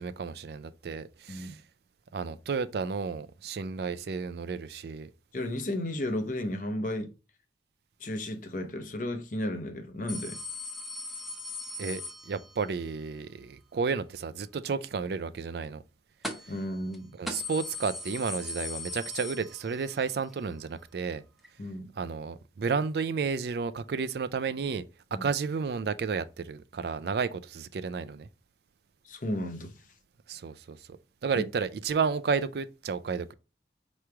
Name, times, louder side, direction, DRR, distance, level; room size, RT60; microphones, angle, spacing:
voice 1, 0.0-1.6 2.1-5.1 11.8-15.8 17.2-21.2 22.0-24.8 25.2-28.3 30.3-30.8 31.2-33.3, right 5 dB, 60° right, 0.4 m, -32 dB
voice 2, 5.3-7.1 8.0-10.4 16.5-17.1 21.6-21.9 25.1-25.3 29.0-29.9 31.4-31.5, left 1 dB, 45° left, 0.7 m, -33 dB
sound 1, 10.1-12.8 16.2-16.6 16.9-17.0 17.3-20.0 20.3-20.4 21.4-21.5, left 2 dB, ahead, 0.7 m, -39 dB
4.8 x 3.1 x 3.3 m
head